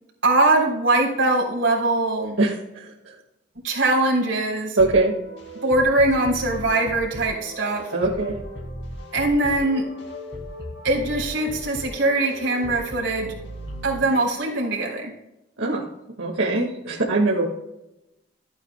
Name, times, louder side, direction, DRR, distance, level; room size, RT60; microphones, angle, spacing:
voice 1, 0.2-2.4 3.6-4.8 5.6-7.9 9.1-9.9 10.8-13.3 13.8-15.1, right 2 dB, 70° right, -2 dB, 3.7 m, -22 dB
voice 2, 2.4-2.9 4.8-5.1 7.9-8.3 15.6-15.8 16.2-17.5, right 2 dB, 85° right, -4 dB, 1.8 m, -22 dB
sound 1, 4.8-14.9, equal, 65° left, 2.4 m, -37 dB
14.5 x 8.9 x 2.2 m, 0.92 s
head